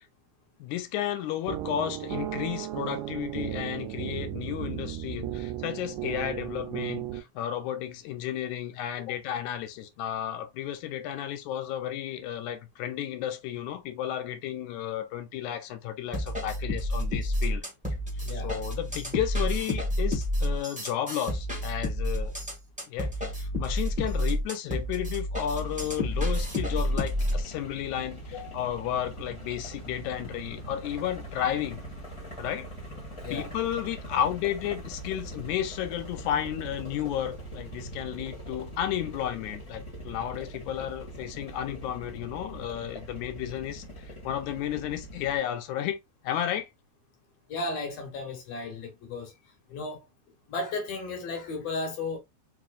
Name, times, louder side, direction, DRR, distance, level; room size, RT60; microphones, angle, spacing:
voice 1, 0.6-17.6 18.3-22.3 22.9-23.1 23.4-31.8 32.4-32.7 33.3-43.8 44.2-46.0 46.2-46.7, left 11 dB, 85° left, 2.1 m, -33 dB
sound 1, 1.5-7.2, right 13 dB, 85° right, 2.0 m, -35 dB
sound 2, 16.1-27.4, left 1 dB, 10° right, 0.4 m, -29 dB
voice 2, 18.2-18.6 28.3-28.7 33.2-33.5 47.5-49.3 49.7-50.0 50.5-52.2, left 3 dB, 65° left, 2.3 m, -35 dB
sound 3, 25.5-45.4, right 1 dB, 15° left, 1.5 m, -42 dB
4.8 x 3.0 x 2.4 m
omnidirectional pair, 3.3 m